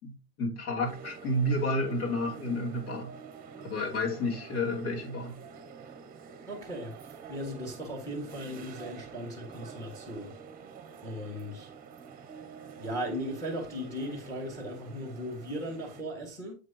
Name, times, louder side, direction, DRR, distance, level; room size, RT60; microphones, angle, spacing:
voice 1, 0.0-3.1 3.6-5.3, left 1 dB, 75° left, 3.0 m, -31 dB
sound 1, 0.8-16.0, right 6 dB, 20° right, 1.2 m, -47 dB
voice 2, 6.5-7.0 7.3-10.3 11.0-11.7 12.8-16.5, equal, 5° left, 1.8 m, -37 dB
7.9 x 6.1 x 2.9 m
supercardioid pair, 150°, 44 cm